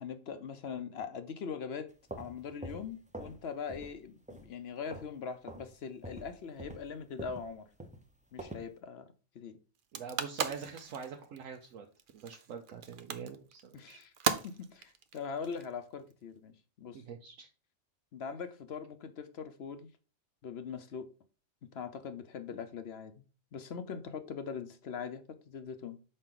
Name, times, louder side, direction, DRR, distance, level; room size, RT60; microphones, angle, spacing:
voice 1, 0.0-1.9 2.2-7.7 8.3-9.1 9.3-9.6 13.7-14.1 14.4-17.0 18.1-19.9 20.4-21.1 21.6-23.2 23.5-26.0, left 6 dB, 55° left, 0.9 m, -41 dB
sound 1, 1.9-3.4 3.7-4.0 4.3-5.2 5.5-5.7 6.0-8.7, right 1 dB, 10° right, 0.5 m, -46 dB
sound 2, 9.7-16.1, right 7 dB, 55° right, 0.6 m, -37 dB
voice 2, 9.9-11.9 12.1-14.0 16.9-17.5, right 6 dB, 75° right, 1.0 m, -44 dB
6.5 x 4.5 x 3.8 m
omnidirectional pair, 1.4 m